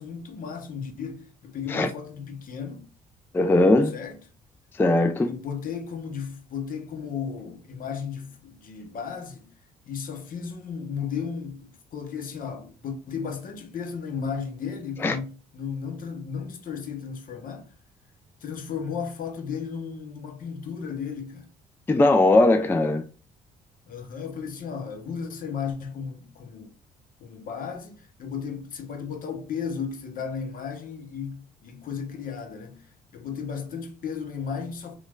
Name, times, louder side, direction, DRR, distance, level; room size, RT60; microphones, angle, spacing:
voice 1, 0.0-2.9 3.9-4.2 5.2-9.5 9.9-17.7 18.4-21.5 23.9-26.7 27.2-32.8 33.1-35.0, left 6 dB, 55° left, 0.7 m, -34 dB
voice 2, 3.3-3.9 4.8-5.3 15.0-15.2 21.9-23.0, left 2 dB, 15° left, 0.3 m, -19 dB
3.0 x 2.2 x 2.2 m
hypercardioid pair, 55°, 17 cm